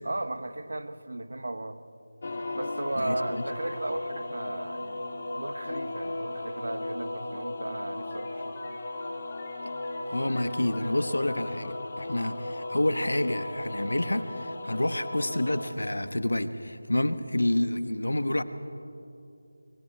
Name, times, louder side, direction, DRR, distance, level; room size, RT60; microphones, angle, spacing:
voice 1, 0.0-1.8 2.5-8.6, right 2 dB, 75° right, 11 dB, 1.2 m, -35 dB
sound 1, 2.2-15.7, left 2 dB, 45° left, 2.6 m, -36 dB
voice 2, 3.0-3.4 10.1-18.4, left 1 dB, 90° left, 11 dB, 1.2 m, -28 dB
sound 2, 7.9-14.1, left 3 dB, 25° left, 2.4 m, -50 dB
25.0 x 24.0 x 4.5 m, 2.6 s
figure-of-eight pair, 170°, 0 cm